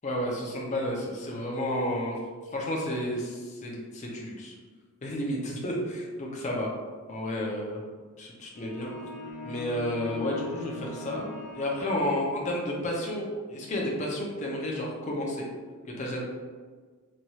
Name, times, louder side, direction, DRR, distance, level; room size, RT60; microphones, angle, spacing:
voice 1, 0.0-2.2 2.5-4.5 5.0-6.7 7.1-7.8 8.2-8.9 9.4-15.5 16.0-16.2, left 1 dB, 30° left, -2 dB, 0.4 m, -31 dB
sound 1, 8.6-12.5, left 3 dB, 70° left, 0.6 m, -40 dB
3.0 x 2.3 x 2.7 m, 1.5 s
head